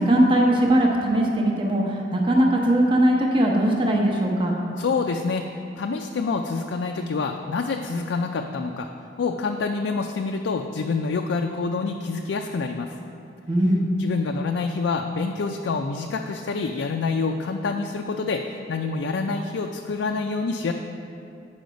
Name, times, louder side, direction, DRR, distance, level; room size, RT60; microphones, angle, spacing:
voice 1, 0.0-4.6 13.5-13.9, right 1 dB, 25° right, -1 dB, 0.8 m, -20 dB
voice 2, 4.8-5.5 5.8-8.9 9.2-13.0 14.0-20.7, left 4 dB, 75° left, 3 dB, 0.4 m, -27 dB
9.2 x 5.6 x 5.1 m, 2.6 s
head